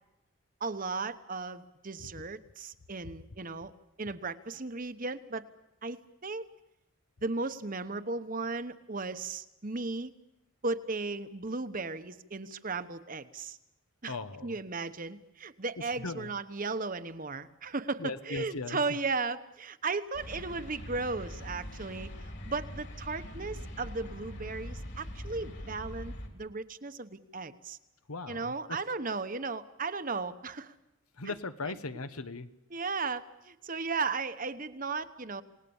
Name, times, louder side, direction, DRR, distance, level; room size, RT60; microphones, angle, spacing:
voice 1, 0.6-3.7 4.0-5.4 5.8-6.4 7.2-10.1 10.6-13.6 14.0-14.2 14.4-22.1 22.4-27.8 28.3-30.7 31.2-31.3 31.7-31.8 32.7-35.4, right 3 dB, 40° right, 11 dB, 1.0 m, -36 dB
voice 2, 14.1-14.6 16.0-16.3 18.0-18.8 28.1-28.5 31.2-32.5, left 3 dB, 85° left, 11 dB, 1.3 m, -38 dB
sound 1, 20.1-26.3, equal, 50° left, 3.7 m, -42 dB
28.5 x 19.0 x 7.2 m, 0.91 s
head